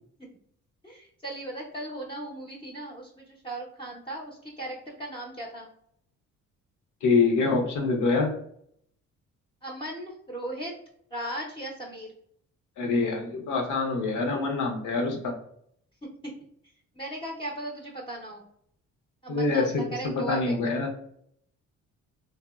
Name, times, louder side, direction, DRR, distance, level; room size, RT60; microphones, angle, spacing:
voice 1, 0.8-5.7 9.6-10.7 11.1-12.1 16.0-16.3 17.0-18.5 19.2-20.5, right 1 dB, 15° left, -3 dB, 0.6 m, -37 dB
voice 2, 7.0-8.3 12.8-15.3 19.3-20.9, left 3 dB, 80° left, 2 dB, 0.8 m, -25 dB
3.4 x 2.1 x 2.2 m, 0.68 s
cardioid pair, 90°, 30 cm